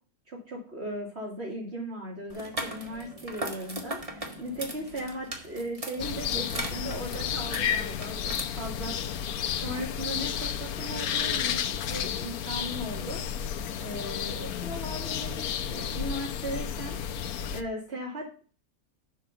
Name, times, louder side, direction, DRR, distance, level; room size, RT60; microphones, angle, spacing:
voice 1, 0.3-9.1 9.5-13.2 13.8-17.0 17.5-18.4, right 1 dB, 45° right, -4 dB, 2.7 m, -37 dB
sound 1, 2.3-8.4, right 1 dB, 25° right, 1.6 m, -39 dB
sound 2, 6.0-17.6, left 8 dB, 85° left, 1.3 m, -32 dB
7.4 x 5.7 x 6.7 m, 0.39 s
omnidirectional pair, 1.6 m